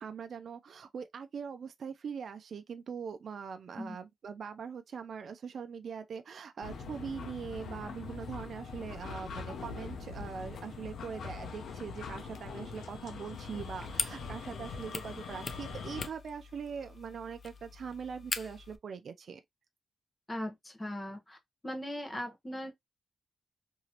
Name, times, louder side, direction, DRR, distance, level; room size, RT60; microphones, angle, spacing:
voice 1, 0.0-19.4, right 6 dB, 65° right, 0.4 m, -42 dB
sound 1, 6.6-16.1, left 5 dB, 85° left, 0.7 m, -43 dB
sound 2, 13.3-18.8, left 4 dB, 40° left, 0.4 m, -42 dB
voice 2, 20.3-21.4 21.6-22.7, left 1 dB, 20° left, 1.0 m, -39 dB
2.9 x 2.7 x 2.8 m
cardioid pair, 105°, 0 cm